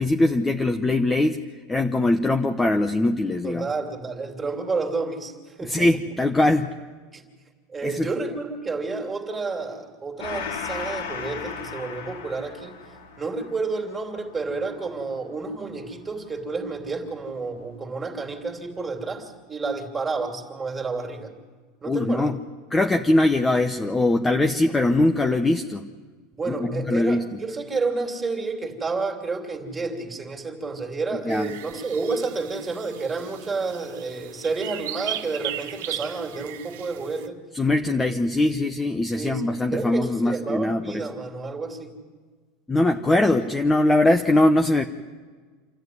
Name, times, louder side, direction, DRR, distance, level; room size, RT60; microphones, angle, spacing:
voice 1, 0.0-1.4 1.7-3.7 5.6-6.8 7.8-8.1 21.9-22.4 22.7-25.9 26.5-27.4 31.2-31.5 37.5-41.1 42.7-44.8, left 2 dB, 10° left, 6 dB, 0.9 m, -21 dB
voice 2, 3.4-5.9 7.1-7.2 7.7-12.8 13.2-21.3 21.8-22.3 24.7-24.8 26.3-37.4 39.2-41.9, right 4 dB, 15° right, 2 dB, 3.0 m, -30 dB
Gong, 10.2-17.2, left 6 dB, 90° left, 3.7 m, -37 dB
sound 1, 31.3-37.3, right 11 dB, 75° right, 1.5 m, -37 dB
27.5 x 13.5 x 9.6 m, 1.5 s
supercardioid pair, 150°, 0 cm